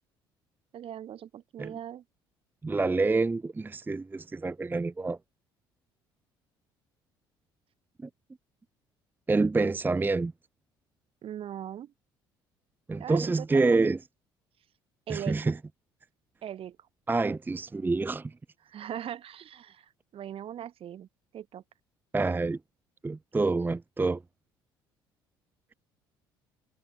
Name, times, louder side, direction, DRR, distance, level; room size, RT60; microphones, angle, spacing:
voice 1, 0.7-2.0 11.2-11.9 13.0-13.9 15.1-15.6 16.4-16.8 18.6-21.1 21.3-21.6, right 10 dB, 50° right, 2.8 m, -40 dB
voice 2, 2.6-5.2 8.0-8.1 9.3-10.3 12.9-14.0 15.1-15.6 17.1-18.3 22.1-22.6 23.0-24.2, right 3 dB, 15° right, 0.7 m, -27 dB
hypercardioid pair, 55°, 12 cm